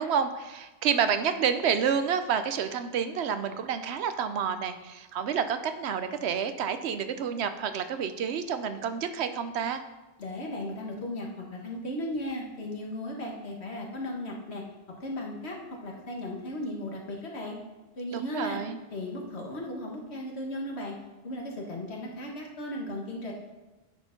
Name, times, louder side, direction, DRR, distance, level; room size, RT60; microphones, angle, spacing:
voice 1, 0.0-9.8 18.1-18.8, right 7 dB, 90° right, 10 dB, 0.9 m, -29 dB
voice 2, 10.2-14.6 15.0-17.6 18.0-18.6 18.9-20.9 21.2-23.3, left 1 dB, 90° left, -1 dB, 1.8 m, -36 dB
9.8 x 4.4 x 5.9 m, 1.1 s
omnidirectional pair, 1.1 m